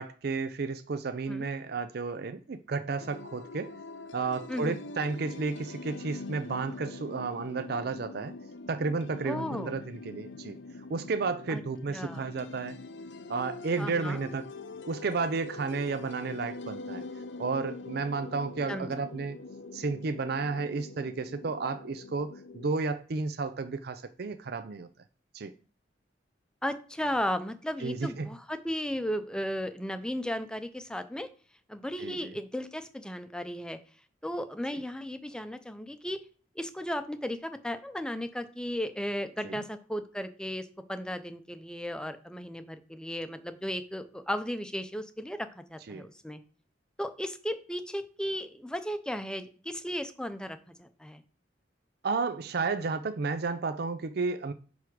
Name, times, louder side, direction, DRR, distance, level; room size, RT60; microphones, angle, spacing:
voice 1, 0.0-3.7 4.1-8.4 8.7-10.6 10.9-12.8 13.3-14.4 14.9-17.0 17.4-19.4 19.7-24.9 25.3-25.5 27.8-28.3 32.0-32.3 39.4-39.6 45.9-46.1 52.0-54.5, right 4 dB, 60° right, 0.5 m, -32 dB
sound 1, 3.0-22.8, left 3 dB, 90° left, 0.7 m, -44 dB
voice 2, 9.2-9.7 11.5-11.6 11.9-12.2 13.8-14.2 18.7-18.9 26.6-31.3 31.7-33.8 34.2-36.2 36.6-46.4 47.0-51.2, equal, 5° left, 0.6 m, -35 dB
9.4 x 3.5 x 6.1 m
head